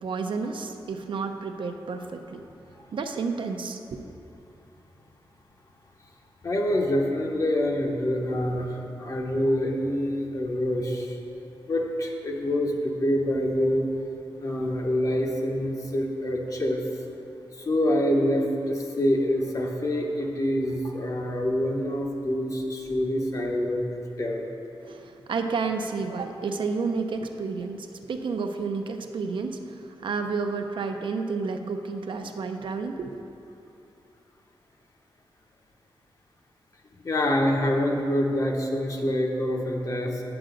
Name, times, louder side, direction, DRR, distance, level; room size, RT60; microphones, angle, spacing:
voice 1, 0.0-2.4 2.9-4.1 24.8-33.2, right 4 dB, 65° right, 5 dB, 0.5 m, -31 dB
voice 2, 6.4-11.1 11.7-13.9 14.4-16.8 17.6-23.8 24.2-24.4 37.0-40.2, left 1 dB, 35° left, 1 dB, 0.9 m, -26 dB
8.7 x 7.8 x 3.9 m, 2.8 s
wide cardioid pair, 165°, 9 cm